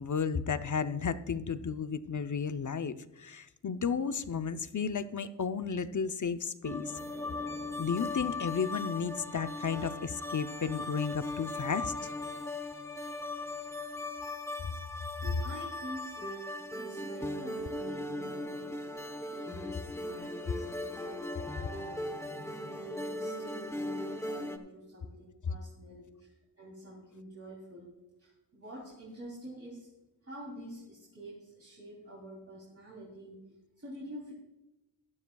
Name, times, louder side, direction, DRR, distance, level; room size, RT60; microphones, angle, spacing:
voice 1, 0.0-6.9 7.8-12.1, left 6 dB, 45° left, 10 dB, 0.6 m, -33 dB
sound 1, 6.6-24.6, left 2 dB, 5° left, 0.9 m, -38 dB
voice 2, 15.2-22.2 22.7-27.9 28.2-29.9 30.2-34.3, right 1 dB, 35° right, -4 dB, 3.1 m, -48 dB
17.0 x 12.0 x 2.3 m, 0.96 s
wide cardioid pair, 95°, 42 cm